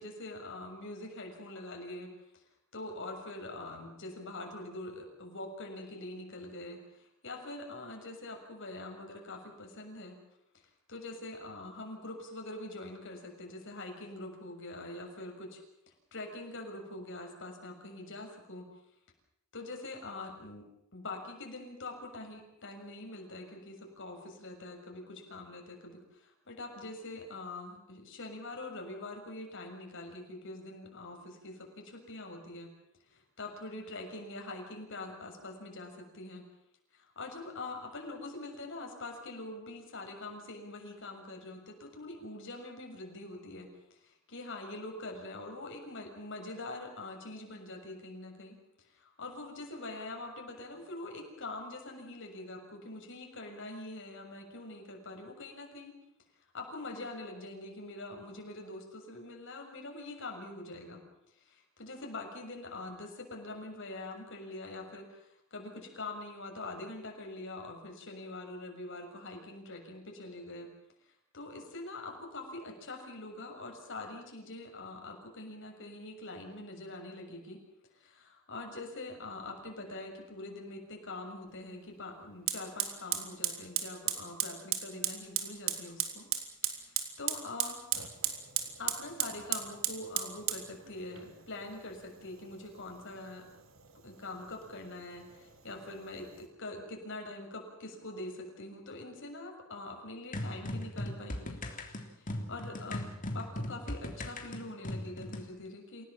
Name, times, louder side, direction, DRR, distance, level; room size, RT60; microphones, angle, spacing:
voice 1, 0.0-2.1 2.7-10.2 10.5-10.6 10.9-15.6 16.1-18.7 19.5-32.7 33.1-36.5 36.9-48.6 48.9-55.9 56.5-61.0 61.4-70.7 71.3-77.6 77.9-86.3 86.7-87.8 88.8-93.5 94.0-101.6 101.9-103.1 103.3-106.0, left 2 dB, 65° left, 2 dB, 6.8 m, -44 dB
Fire, 81.5-81.6 82.5-96.5, right 10 dB, 70° right, 3.3 m, -37 dB
sound 1, 100.3-105.5, left 1 dB, 40° left, 3.4 m, -38 dB
28.5 x 17.5 x 7.4 m, 0.81 s
head